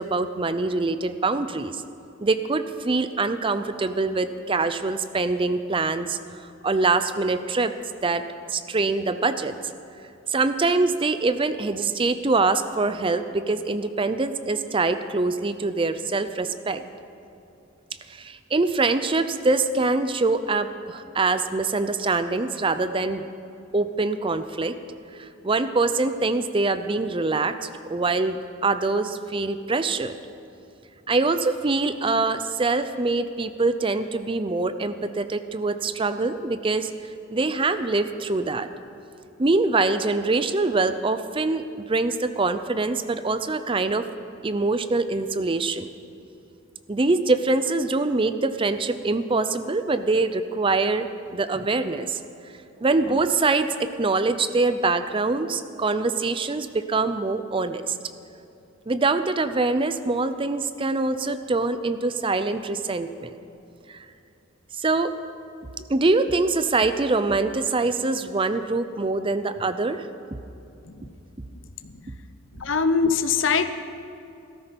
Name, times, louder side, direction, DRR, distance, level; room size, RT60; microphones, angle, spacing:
voice 1, 0.0-1.8 2.2-6.2 6.6-7.7 8.0-8.2 8.5-9.5 10.3-16.8 18.1-23.3 23.7-24.8 25.4-30.1 31.1-36.9 37.3-38.7 39.4-44.1 44.4-45.9 46.9-52.2 52.8-58.0 58.9-63.3 63.9-64.0 64.8-65.1 65.9-70.1, right 3 dB, 25° right, 11 dB, 0.5 m, -24 dB
voice 2, 72.5-73.7, left 5 dB, 65° left, 10 dB, 0.8 m, -22 dB
17.0 x 14.0 x 5.3 m, 2.8 s
head